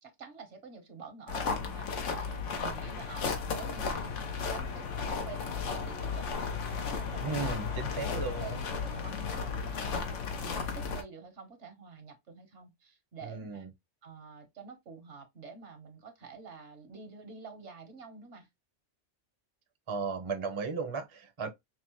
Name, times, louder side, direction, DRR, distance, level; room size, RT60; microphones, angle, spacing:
voice 1, 0.0-6.2 6.9-7.4 7.8-13.7 14.0-18.5, right 5 dB, 70° right, 1.4 m, -48 dB
sound 1, 1.3-11.0, left 5 dB, 80° left, 1.2 m, -34 dB
voice 2, 7.2-8.6 13.2-13.7 19.9-21.5, right 5 dB, 30° right, 0.7 m, -35 dB
5.8 x 2.1 x 3.0 m
omnidirectional pair, 1.2 m